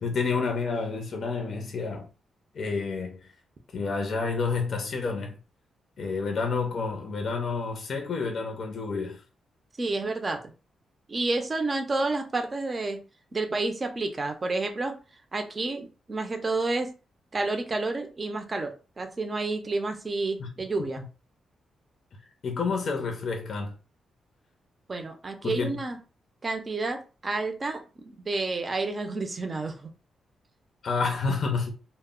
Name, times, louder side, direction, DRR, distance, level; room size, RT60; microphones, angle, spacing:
voice 1, 0.0-2.1 2.5-3.3 3.7-5.4 6.0-9.2 20.4-20.5 22.4-23.7 25.4-25.8 30.8-31.7, left 4 dB, 55° left, 0.5 m, -29 dB
voice 2, 9.8-10.5 11.1-13.0 13.3-15.0 15.3-16.9 17.3-21.0 24.9-26.0 26.4-29.9, right 3 dB, 30° right, 0.5 m, -30 dB
2.0 x 2.0 x 3.6 m
cardioid pair, 105°, 0 cm